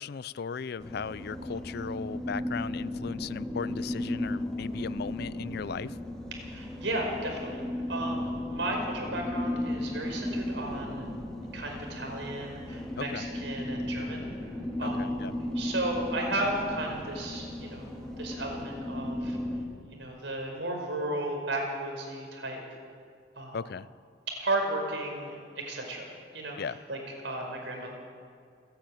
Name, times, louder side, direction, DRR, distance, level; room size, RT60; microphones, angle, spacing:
voice 1, 0.0-6.0 13.0-13.3 14.8-15.3 23.5-23.9 26.6-26.8, left 6 dB, 55° left, 19 dB, 0.4 m, -37 dB
sound 1, 0.8-19.6, left 1 dB, 5° left, 2.5 m, -35 dB
voice 2, 6.4-11.0 11.5-15.1 15.6-19.4 19.9-22.6 23.4-23.6 24.3-26.1 26.3-27.0 27.2-27.9, right 1 dB, 70° right, 1 dB, 5.3 m, -34 dB
28.0 x 10.5 x 9.2 m, 2.2 s
head